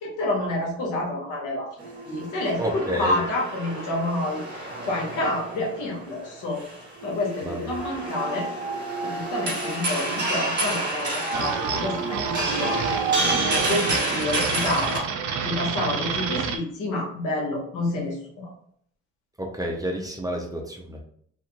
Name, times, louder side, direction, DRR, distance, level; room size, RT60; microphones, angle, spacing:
voice 1, 0.0-1.7 2.1-6.6 7.0-8.5 9.0-12.8 13.1-15.1 15.4-18.5, left 2 dB, 85° left, -1 dB, 1.1 m, -29 dB
sound 1, 1.8-15.0, right 2 dB, 35° right, 1.4 m, -29 dB
voice 2, 2.6-3.2 7.4-7.7 19.4-21.0, right 1 dB, 10° right, 1 dB, 0.6 m, -30 dB
sound 2, 11.3-16.6, right 6 dB, 70° right, 0.5 m, -29 dB
2.6 x 2.5 x 2.8 m, 0.63 s
cardioid pair, 90°, 30 cm